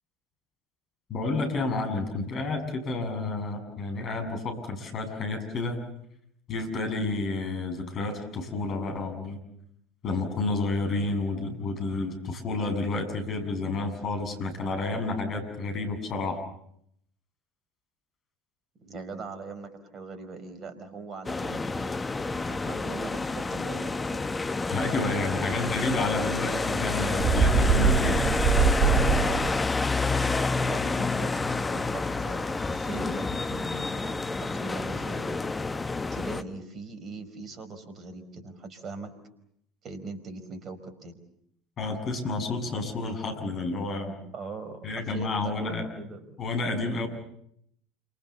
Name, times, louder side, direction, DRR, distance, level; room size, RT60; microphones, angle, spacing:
voice 1, 1.1-5.8 6.5-9.4 10.0-16.4 24.7-28.3 41.8-44.1 44.8-45.9 46.4-47.1, left 3 dB, 40° left, 6 dB, 7.1 m, -30 dB
voice 2, 18.8-24.4 25.3-25.7 29.1-29.5 30.7-35.4 36.1-39.1 39.8-41.1 44.3-46.4, right 3 dB, 35° right, 11 dB, 5.0 m, -40 dB
sound 1, 21.2-36.4, left 3 dB, 15° left, 1.3 m, -29 dB
Bird, 27.2-29.6, right 5 dB, 55° right, 2.2 m, -23 dB
28.5 x 26.5 x 7.2 m, 0.73 s
figure-of-eight pair, 70°, 0 cm